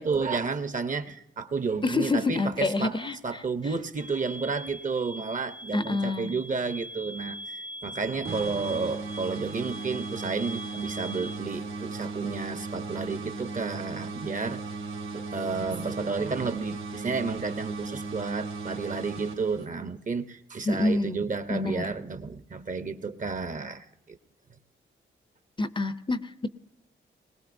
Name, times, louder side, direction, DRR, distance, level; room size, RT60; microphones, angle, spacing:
voice 1, 0.0-14.6 15.1-24.2, right 4 dB, 40° right, 10 dB, 0.8 m, -31 dB
voice 2, 1.8-3.4 5.7-6.3 20.6-21.2 21.5-21.9 25.6-26.5, left 2 dB, 25° left, 12 dB, 0.6 m, -27 dB
sound 1, 8.2-20.0, right 3 dB, 85° right, 1.6 m, -36 dB
21.0 x 18.5 x 2.6 m, 0.97 s
cardioid pair, 80°, 20 cm